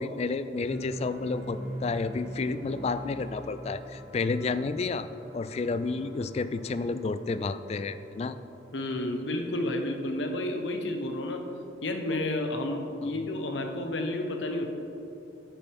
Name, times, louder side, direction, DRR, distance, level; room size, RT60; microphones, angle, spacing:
voice 1, 0.0-5.1 5.3-8.4 13.0-13.2, left 3 dB, 35° left, 12 dB, 0.3 m, -31 dB
sound 1, 0.5-8.8, equal, 15° right, 1.9 m, -43 dB
voice 2, 8.7-11.4 11.8-14.7, left 1 dB, 85° left, 4 dB, 0.9 m, -31 dB
9.1 x 8.9 x 3.5 m, 2.9 s
head